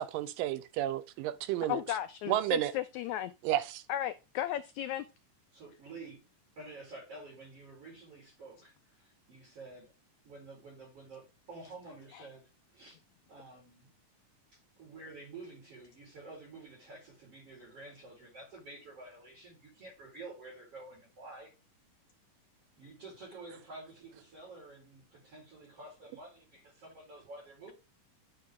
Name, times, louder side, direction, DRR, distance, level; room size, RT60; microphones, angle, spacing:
voice 1, 0.0-1.8 2.3-2.7 3.4-3.8, right 13 dB, 90° right, 2.4 m, -31 dB
voice 2, 1.7-3.3 3.9-5.1 12.1-12.3, left 12 dB, 85° left, 1.6 m, -35 dB
voice 3, 5.5-6.2 6.6-9.9 10.2-12.9 13.3-13.8 14.5-21.5 22.8-27.7, right 2 dB, 45° right, 4.6 m, -50 dB
9.6 x 5.4 x 3.6 m
omnidirectional pair, 3.8 m